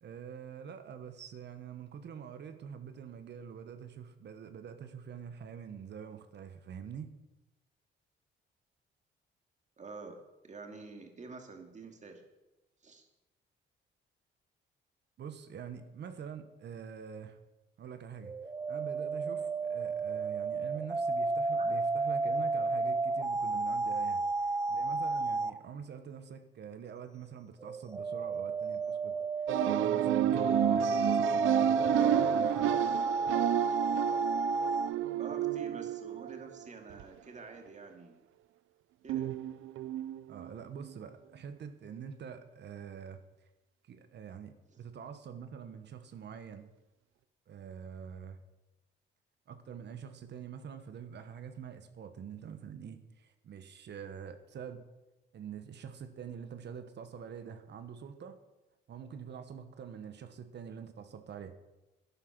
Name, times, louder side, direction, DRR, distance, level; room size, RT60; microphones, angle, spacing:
voice 1, 0.0-7.1 15.2-17.4 17.8-18.3 18.7-32.8 40.3-43.2 43.8-46.7 47.5-48.4 49.5-54.8 55.3-58.4 58.9-61.5, right 7 dB, 60° right, 9 dB, 1.2 m, -45 dB
voice 2, 9.8-10.2 10.4-12.2 12.8-13.1 21.5-21.7 35.2-38.2 39.0-39.3 44.7-44.8, right 4 dB, 35° right, 4 dB, 2.5 m, -48 dB
sound 1, 18.2-25.6 27.6-34.9, right 3 dB, 15° right, 0.5 m, -32 dB
sound 2, 29.5-37.0 39.1-40.5 40.9-41.0, right 12 dB, 80° right, 0.5 m, -31 dB
11.5 x 9.8 x 6.2 m, 1.0 s
cardioid pair, 90°, 20 cm